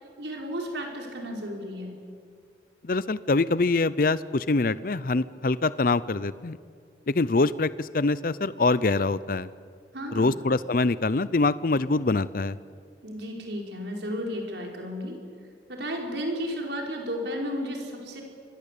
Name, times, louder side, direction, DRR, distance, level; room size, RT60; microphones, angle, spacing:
voice 1, 0.2-1.9 9.9-10.4 13.0-15.2 15.7-18.2, equal, 75° right, 1 dB, 5.1 m, -33 dB
voice 2, 2.8-6.6 7.1-9.5 10.1-12.5, left 3 dB, 50° left, 17 dB, 0.6 m, -24 dB
26.5 x 21.0 x 8.5 m, 2.2 s
head